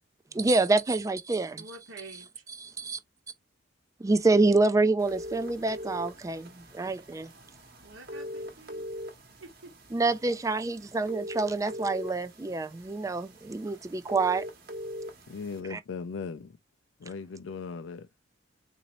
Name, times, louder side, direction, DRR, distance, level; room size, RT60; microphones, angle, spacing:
voice 1, 0.3-1.6 2.6-3.0 4.0-7.2 9.9-14.4 15.7-15.8, right 3 dB, 15° right, 0.3 m, -27 dB
voice 2, 1.6-2.4 7.8-8.8 9.4-9.7, right 2 dB, 85° right, 1.0 m, -48 dB
sound 1, 5.0-15.6, equal, 50° right, 1.1 m, -42 dB
voice 3, 15.3-16.5 17.0-18.1, left 5 dB, 75° left, 0.4 m, -38 dB
3.9 x 2.7 x 2.9 m
head